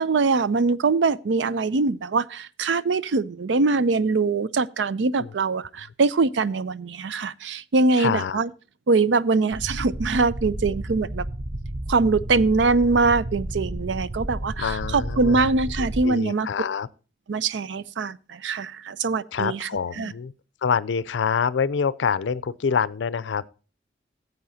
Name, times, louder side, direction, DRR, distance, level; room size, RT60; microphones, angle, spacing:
voice 1, 0.0-8.5 8.9-11.2 11.9-16.5 17.3-19.7 20.0-20.1, right 3 dB, 85° right, 0.5 m, -23 dB
voice 2, 8.0-8.4 14.6-15.5 15.8-16.9 19.3-20.3 20.6-23.5, left 6 dB, 90° left, 0.4 m, -26 dB
sound 1, 9.5-16.0, right 1 dB, 25° right, 0.5 m, -32 dB
15.0 x 8.0 x 2.7 m
head